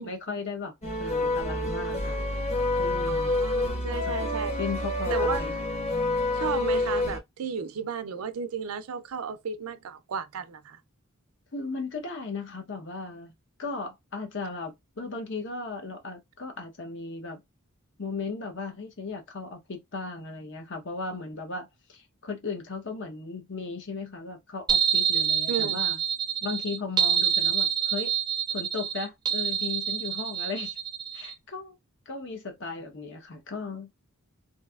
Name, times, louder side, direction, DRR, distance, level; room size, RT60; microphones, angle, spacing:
voice 1, 0.0-2.2 2.8-3.4 4.1-4.2 4.6-5.5 11.5-13.3 13.6-17.4 18.0-26.0 26.4-28.1 28.5-30.8 31.1-31.8 32.1-34.0, left 4 dB, 60° left, 0.9 m, -36 dB
sound 1, 0.8-7.2, left 2 dB, 30° left, 1.0 m, -28 dB
voice 2, 3.1-4.5 5.1-5.4 6.3-10.8 25.5-25.8, right 6 dB, 85° right, 0.4 m, -34 dB
sound 2, 24.7-31.3, right 8 dB, 20° right, 0.3 m, -27 dB
3.1 x 2.6 x 2.3 m
head